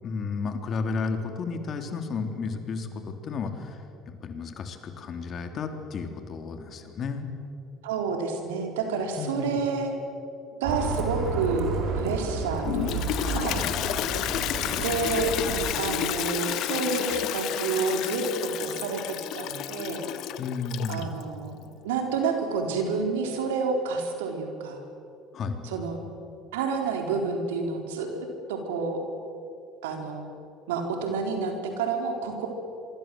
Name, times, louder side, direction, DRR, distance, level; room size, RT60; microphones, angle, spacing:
voice 1, 0.0-7.3 9.2-9.6 13.2-13.7 20.4-21.1 25.3-25.7, left 4 dB, 50° left, 6 dB, 3.5 m, -33 dB
voice 2, 7.8-9.9 10.6-13.6 14.8-15.3 15.8-18.2 18.6-20.0 20.9-21.6 21.8-24.8 25.6-26.0 26.5-29.0 29.8-30.2 30.7-32.5, right 4 dB, 85° right, 4 dB, 4.1 m, -29 dB
Bus, 10.6-15.8, right 4 dB, 65° right, 4.6 m, -31 dB
Toilet flush, 12.6-21.2, left 12 dB, 65° left, 1.2 m, -31 dB
27.5 x 23.5 x 7.8 m, 2.7 s
hypercardioid pair, 70°, 0 cm